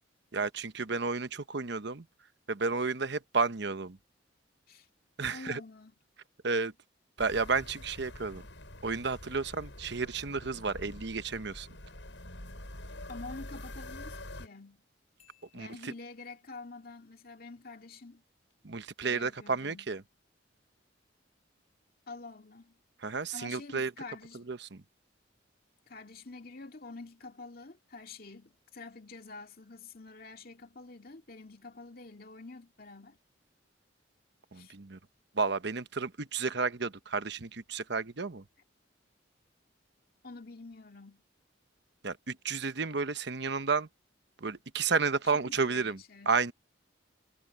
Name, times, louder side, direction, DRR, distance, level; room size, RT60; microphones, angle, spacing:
voice 1, 0.3-2.0 2.5-4.0 5.2-5.6 6.4-6.7 7.2-8.4 8.8-11.7 15.5-15.9 18.6-20.0 23.0-23.9 24.3-24.8 34.5-35.0 35.3-38.4 42.0-43.9 44.4-46.0 46.3-46.5, right 4 dB, 60° right, 1.0 m, -32 dB
voice 2, 5.3-5.9 13.1-14.8 15.5-18.2 19.0-19.9 22.1-22.8 23.3-24.5 25.9-33.2 34.5-34.7 40.2-41.2 45.2-46.5, left 3 dB, 50° left, 2.4 m, -47 dB
sound 1, 7.2-14.5, left 1 dB, 70° left, 8.0 m, -46 dB
Marimba xylophone, 15.2-16.6, left 11 dB, 35° left, 6.8 m, -68 dB
head